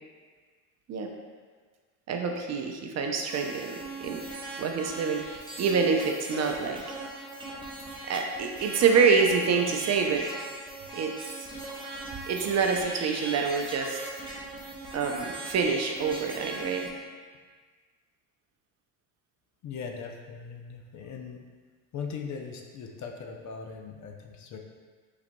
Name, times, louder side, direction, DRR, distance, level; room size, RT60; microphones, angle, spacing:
voice 1, 2.1-4.2 4.6-7.0 8.1-10.3 10.9-11.5 12.3-14.0 14.9-16.9, right 5 dB, 40° right, 3 dB, 0.5 m, -26 dB
sound 1, 3.3-16.9, right 2 dB, 10° right, 0.9 m, -40 dB
voice 2, 19.6-21.4 21.9-24.6, left 5 dB, 45° left, 2 dB, 0.6 m, -39 dB
5.6 x 4.1 x 2.2 m, 1.5 s
supercardioid pair, 95°, 42 cm